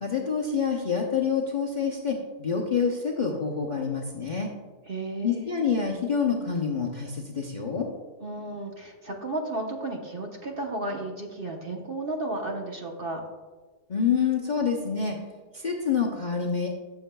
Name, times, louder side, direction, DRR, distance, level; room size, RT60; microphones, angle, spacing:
voice 1, 0.0-4.5 5.2-7.9 13.9-15.2 15.5-16.7, left 6 dB, 40° left, -2 dB, 0.8 m, -27 dB
voice 2, 4.9-5.6 8.2-13.2, right 2 dB, 40° right, 1 dB, 1.0 m, -33 dB
14.0 x 6.9 x 2.3 m, 1.4 s
omnidirectional pair, 1.6 m